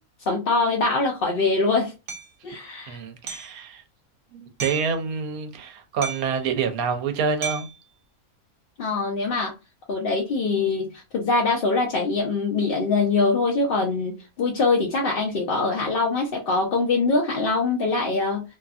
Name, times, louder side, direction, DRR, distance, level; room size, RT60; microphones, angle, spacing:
voice 1, 0.3-1.9 2.4-3.0 8.8-9.5 9.9-18.4, left 3 dB, 60° left, 0.6 m, -23 dB
Hammer, 2.1-2.3 3.3-3.6 4.6-4.9 6.0-6.4 7.4-7.8, right 6 dB, 60° right, 0.5 m, -33 dB
voice 2, 2.9-3.8 4.3-7.7, right 5 dB, 85° right, 1.1 m, -27 dB
2.8 x 2.5 x 2.3 m
omnidirectional pair, 1.5 m